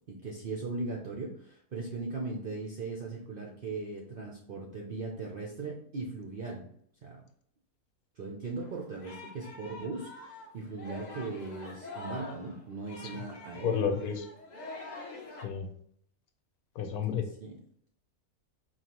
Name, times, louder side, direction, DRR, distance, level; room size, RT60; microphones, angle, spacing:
voice 1, 0.1-6.7 7.0-7.2 8.2-13.8 17.2-17.6, right 3 dB, 65° right, -1 dB, 0.5 m, -39 dB
Singing, 8.6-15.4, left 2 dB, 50° left, 0.5 m, -45 dB
voice 2, 13.6-14.2 15.4-15.7 16.8-17.2, left 7 dB, 90° left, 7 dB, 1.2 m, -30 dB
4.7 x 2.8 x 2.9 m, 0.65 s
omnidirectional pair, 1.6 m